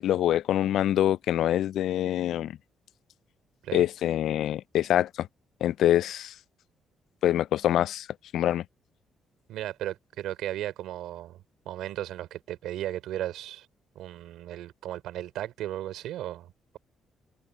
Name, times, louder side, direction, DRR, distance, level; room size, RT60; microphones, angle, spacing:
voice 1, 0.0-2.5 3.7-5.3 5.6-6.3 7.2-8.1 8.3-8.6, left 12 dB, 75° left, 0.4 m, -25 dB
voice 2, 9.5-13.7 13.9-16.8, right 13 dB, 85° right, 3.3 m, -36 dB
cardioid pair, 90°, 0 cm